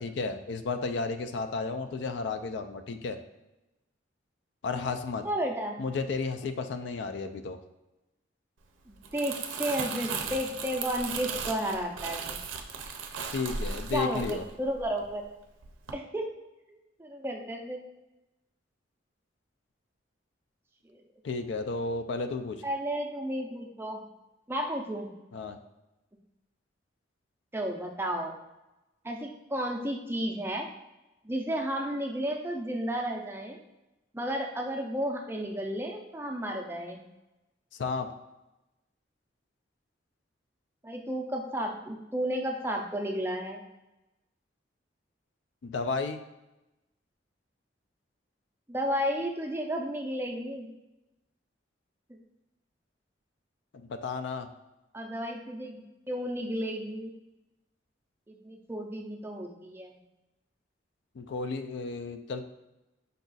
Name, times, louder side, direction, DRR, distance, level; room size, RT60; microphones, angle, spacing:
voice 1, 0.0-3.2 4.6-5.2 5.8-7.6 13.3-14.4 21.2-22.6 25.3-25.6 37.7-38.1 45.6-46.2 53.7-54.5 61.2-62.4, left 4 dB, 65° left, 8 dB, 0.4 m, -33 dB
voice 2, 5.2-5.8 8.9-12.4 13.9-15.3 15.9-16.3 16.7-17.8 20.8-21.0 22.6-24.0 24.5-25.1 27.5-28.4 29.0-30.7 31.2-33.6 34.1-37.0 40.8-43.6 48.7-50.7 52.1-52.2 54.9-57.1 58.3-60.0, equal, 10° right, 2 dB, 0.4 m, -33 dB
Crumpling crinkling, 8.9-15.3 15.6-15.9, right 5 dB, 90° right, 0.5 m, -37 dB
5.3 x 2.4 x 3.9 m, 0.98 s
head